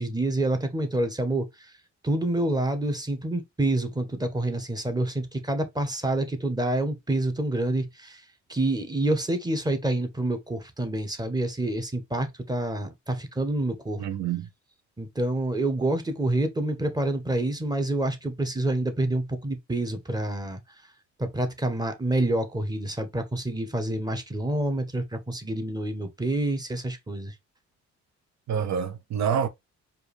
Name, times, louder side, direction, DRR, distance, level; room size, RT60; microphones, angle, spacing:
voice 1, 0.0-1.7 2.0-8.2 8.5-14.0 15.0-20.6 21.2-27.3, right 1 dB, 15° right, 1.0 m, -27 dB
voice 2, 14.0-14.5 28.5-29.5, right 8 dB, 65° right, 0.8 m, -27 dB
4.6 x 2.6 x 3.3 m
cardioid pair, 90°, 30 cm